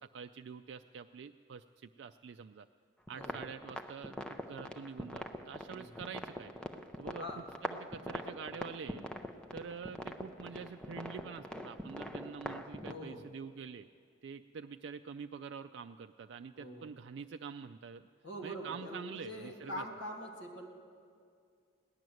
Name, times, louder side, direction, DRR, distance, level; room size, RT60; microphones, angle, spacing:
voice 1, 0.0-2.7 3.1-6.5 7.0-7.3 7.6-9.0 9.5-13.9 14.2-18.1 18.4-19.8, right 6 dB, 65° right, 7 dB, 0.3 m, -46 dB
sound 1, 3.1-12.9, equal, 5° left, 0.6 m, -43 dB
voice 2, 12.8-13.3 16.5-16.9 18.2-20.7, equal, 75° left, 1 dB, 2.0 m, -44 dB
17.5 x 11.0 x 7.7 m, 2.3 s
head